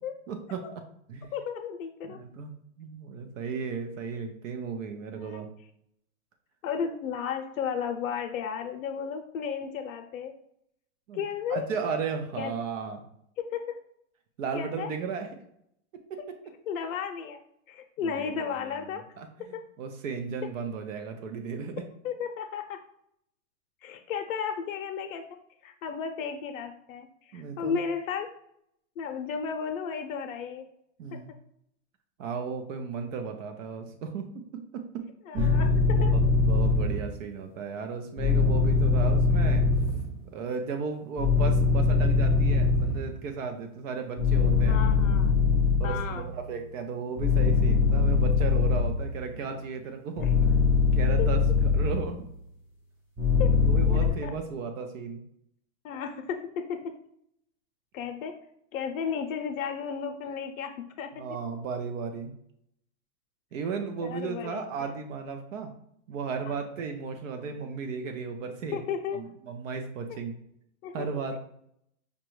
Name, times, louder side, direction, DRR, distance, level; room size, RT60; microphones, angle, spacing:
voice 1, 0.3-0.6 1.1-1.3 2.0-5.5 11.1-11.2 11.5-13.0 14.4-15.3 18.0-18.5 19.2-21.8 27.3-27.8 31.0-31.3 32.2-35.1 35.3-35.6 36.0-36.1 36.4-39.7 40.3-44.8 45.8-50.3 50.9-52.2 53.7-55.2 61.2-62.3 63.5-65.7 66.1-68.8 69.1-70.3 70.9-71.4, right 5 dB, 75° right, 5 dB, 0.6 m, -35 dB
voice 2, 1.3-2.2 5.2-5.4 6.6-10.4 11.1-11.7 12.4-12.5 13.4-13.8 14.5-14.9 16.7-17.4 17.7-19.0 19.5-19.6 22.0-22.8 23.8-25.4 25.6-28.3 29.0-30.6 31.1-31.2 35.3-36.1 44.7-45.4 45.8-46.3 50.2-50.3 51.2-51.3 53.4-53.6 53.9-54.3 55.8-56.9 57.9-58.4 58.7-61.3 64.0-64.9 66.5-66.6 68.7-69.3 70.1-70.2 70.8-71.1, left 7 dB, 85° left, 6 dB, 0.6 m, -34 dB
sound 1, 35.4-37.1 38.2-40.1 41.2-43.1 44.2-46.3 47.2-49.3 50.2-52.1 53.2-54.1, left 4 dB, 5° right, 0.3 m, -22 dB
5.1 x 2.2 x 3.0 m, 0.72 s
hypercardioid pair, 135°, 39 cm